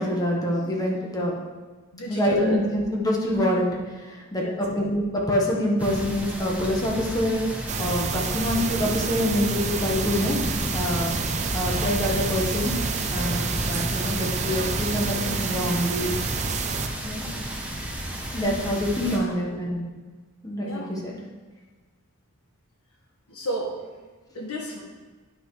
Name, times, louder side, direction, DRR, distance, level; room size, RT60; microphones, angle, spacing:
voice 1, 0.0-1.3 2.1-11.1 11.5-12.7 13.1-16.2 17.0-17.2 18.3-19.8 20.4-21.2, equal, 15° left, -2 dB, 1.4 m, -26 dB
voice 2, 1.9-2.6 4.4-4.6 13.9-14.0 19.1-19.2 20.6-20.9 23.3-23.8 24.3-24.8, right 1 dB, 75° left, -1 dB, 1.7 m, -32 dB
sound 1, 5.8-19.2, right 1 dB, 5° right, 1.0 m, -32 dB
sound 2, 7.7-16.9, right 5 dB, 30° right, 0.4 m, -29 dB
10.0 x 6.0 x 3.3 m, 1.3 s
head